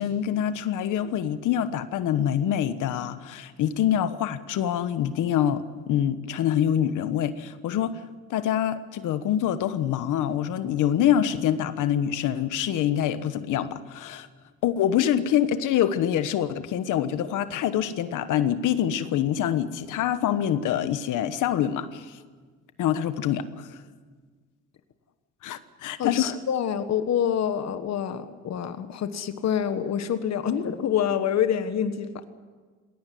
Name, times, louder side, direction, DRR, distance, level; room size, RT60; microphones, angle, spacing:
voice 1, 0.0-8.0 8.3-14.3 14.6-22.2 22.8-23.7 25.4-26.4, left 10 dB, 85° left, 12 dB, 1.3 m, -25 dB
voice 2, 26.0-32.3, left 8 dB, 60° left, 10 dB, 1.4 m, -27 dB
20.0 x 18.0 x 9.3 m, 1.5 s
cardioid pair, 90°, 30 cm